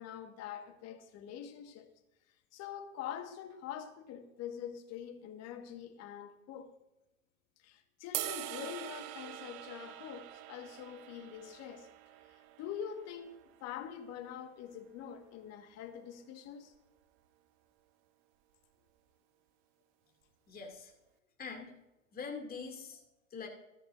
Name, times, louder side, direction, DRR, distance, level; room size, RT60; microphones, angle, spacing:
voice 1, 0.0-1.9 2.5-6.8 7.6-11.9 12.2-16.7, left 9 dB, 40° left, 1.7 m, -45 dB
sound 1, 8.1-14.4, right 15 dB, 45° right, 1.0 m, -44 dB
voice 2, 20.5-20.9 21.4-21.7 22.1-23.0 23.3-23.5, left 5 dB, 20° left, 2.7 m, -43 dB
14.0 x 13.5 x 2.6 m
hypercardioid pair, 100°, 40 cm